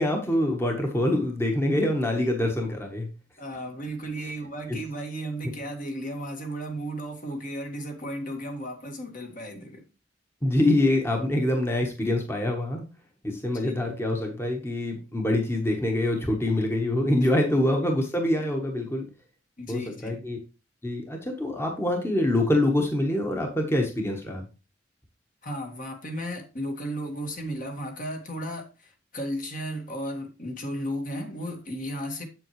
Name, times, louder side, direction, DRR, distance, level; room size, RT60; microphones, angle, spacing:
voice 1, 0.0-3.1 4.2-4.3 4.7-4.8 5.4-5.5 10.4-12.8 13.2-19.1 19.7-20.4 20.8-24.4, left 1 dB, 15° left, 1.2 m, -25 dB
voice 2, 3.4-9.8 13.5-13.8 17.5-17.6 19.6-20.2 25.4-28.7 29.1-32.3, equal, 50° left, 1.8 m, -34 dB
7.7 x 7.7 x 3.1 m
head